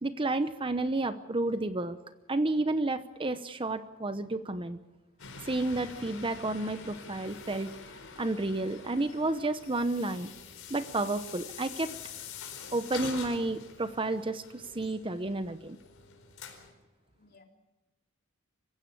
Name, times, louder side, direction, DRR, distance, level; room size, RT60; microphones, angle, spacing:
voice 1, 0.0-2.0 2.3-4.8 5.4-7.7 8.2-10.3 10.7-11.9 12.7-15.8, right 2 dB, 25° right, 11 dB, 0.9 m, -31 dB
sound 1, 5.2-16.7, left 5 dB, 85° left, 4.4 m, -46 dB
voice 2, 17.0-17.4, left 3 dB, 50° left, 2 dB, 3.5 m, -62 dB
26.0 x 16.0 x 8.5 m, 1.0 s
head